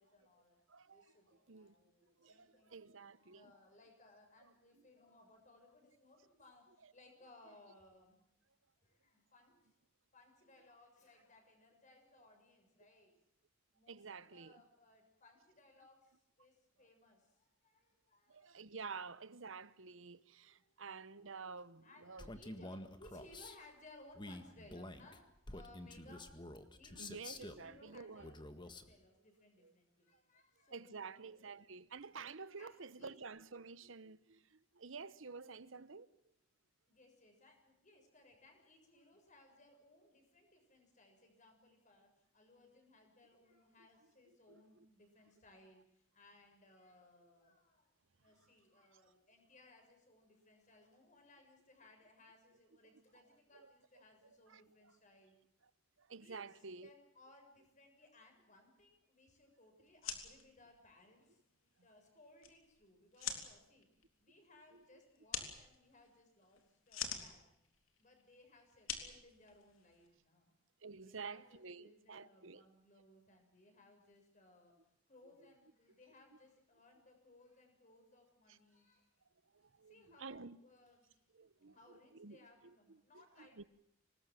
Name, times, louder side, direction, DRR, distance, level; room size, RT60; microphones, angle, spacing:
voice 1, 0.0-0.6 0.9-8.2 8.8-9.6 10.1-13.2 13.7-18.5 18.9-19.1 20.0-20.8 21.1-21.4 21.8-26.4 26.7-31.6 32.5-33.1 36.9-47.9 48.2-55.3 56.2-56.4 56.7-61.4 61.8-63.9 64.2-67.6 68.0-70.6 71.0-74.7 75.1-79.1 79.9-81.2 81.7-83.7, left 2 dB, 40° left, 6.9 m, -64 dB
voice 2, 0.7-1.0 1.5-1.7 2.2-3.5 6.8-6.9 13.9-14.6 18.3-22.3 26.1-26.2 26.9-28.3 29.6-29.7 30.7-36.1 44.5-44.6 53.5-53.7 54.5-54.9 56.0-56.9 64.7-64.8 70.8-72.6 78.5-78.6 79.5-80.6 81.3-82.7 83.1-83.6, right 5 dB, 75° right, 1.0 m, -51 dB
Male speech man speaking, 22.2-23.6 24.1-27.7 28.2-28.9, left 1 dB, 25° left, 1.7 m, -49 dB
sound 1, 59.9-70.1, left 8 dB, 85° left, 3.7 m, -48 dB
26.0 x 20.0 x 7.7 m
head